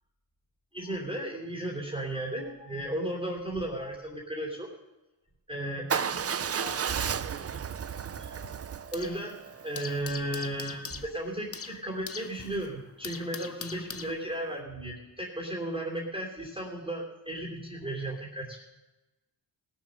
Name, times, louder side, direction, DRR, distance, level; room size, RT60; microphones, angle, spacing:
voice 1, 0.7-4.7 5.5-6.3 8.2-8.4 8.9-18.6, right 1 dB, 10° right, -3 dB, 2.9 m, -35 dB
Motorcycle / Engine starting / Idling, 5.9-10.0, right 7 dB, 35° right, 0.4 m, -33 dB
sound 1, 7.2-9.3 9.5-14.6, left 5 dB, 30° left, 0.7 m, -43 dB
18.0 x 7.1 x 6.5 m, 1.1 s
wide cardioid pair, 140°, 46 cm